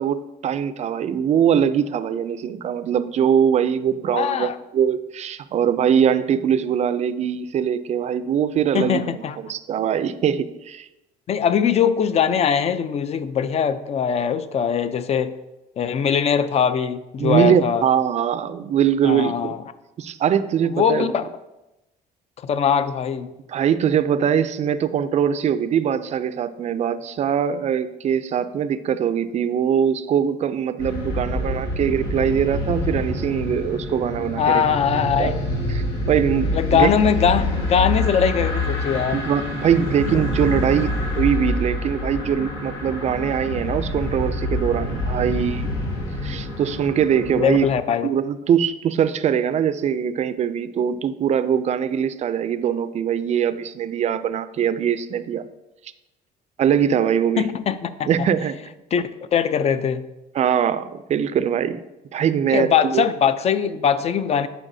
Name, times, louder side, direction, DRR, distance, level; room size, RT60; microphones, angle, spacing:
voice 1, 0.0-10.9 17.2-19.6 20.0-21.1 23.5-34.6 35.2-35.3 35.7-36.9 39.1-45.8 46.2-47.7 48.0-55.5 56.6-57.5 58.1-58.5 60.3-61.8 62.1-63.0, right 8 dB, 40° right, 0.4 m, -22 dB
voice 2, 4.1-4.6 8.7-9.4 11.3-15.4 15.8-17.8 19.0-19.6 20.7-21.3 22.4-23.3 34.4-35.4 36.5-39.2 47.3-48.1 57.4-58.1 58.9-60.1 62.5-64.5, left 7 dB, 40° left, 0.4 m, -21 dB
sound 1, 30.8-47.7, left 1 dB, 85° left, 1.4 m, -26 dB
9.9 x 4.1 x 2.7 m
cardioid pair, 110°, 17 cm